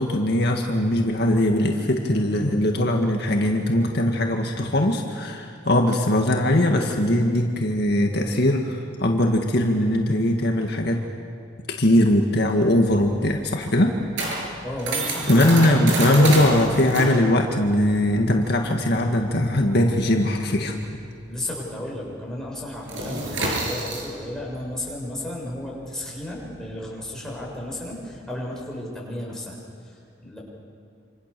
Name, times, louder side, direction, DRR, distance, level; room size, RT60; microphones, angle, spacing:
voice 1, 0.0-11.0 11.8-13.9 14.5-14.6 15.3-20.7, left 1 dB, 60° left, 2 dB, 1.9 m, -20 dB
sound 1, 12.6-21.6 21.9-22.1 22.4-28.2, right 2 dB, 85° right, 7.9 m, -30 dB
voice 2, 14.6-16.7 21.3-29.6 29.8-30.4, left 1 dB, 5° left, -4 dB, 7.3 m, -34 dB
27.5 x 27.0 x 6.9 m, 2.5 s
head